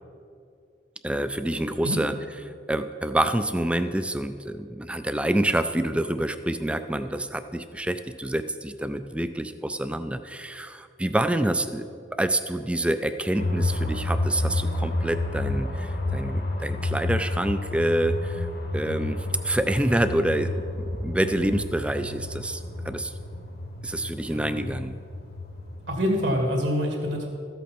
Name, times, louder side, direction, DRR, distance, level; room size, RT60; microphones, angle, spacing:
voice 1, 1.0-2.1 2.7-11.8 12.1-18.5 18.7-20.6 21.0-23.1 23.8-25.0, right 1 dB, 5° right, 10 dB, 0.3 m, -27 dB
sound 1, 13.4-26.3, left 2 dB, 55° left, 1.2 m, -30 dB
voice 2, 24.3-24.6 25.9-27.3, equal, 70° right, 0 dB, 2.1 m, -26 dB
14.0 x 8.2 x 4.4 m, 2.4 s
head